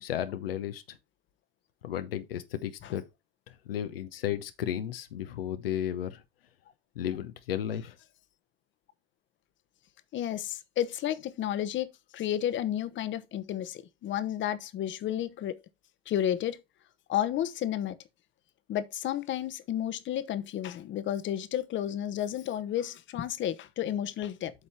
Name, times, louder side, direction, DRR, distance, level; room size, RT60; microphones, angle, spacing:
voice 1, 0.0-1.0 1.8-3.0 3.5-6.2 6.9-8.0, left 10 dB, 70° left, 1.0 m, -34 dB
voice 2, 10.1-15.6 16.1-16.6 17.1-18.0 18.7-24.5, left 11 dB, 40° left, 1.1 m, -32 dB
8.2 x 5.5 x 4.4 m
figure-of-eight pair, 65°, 30 cm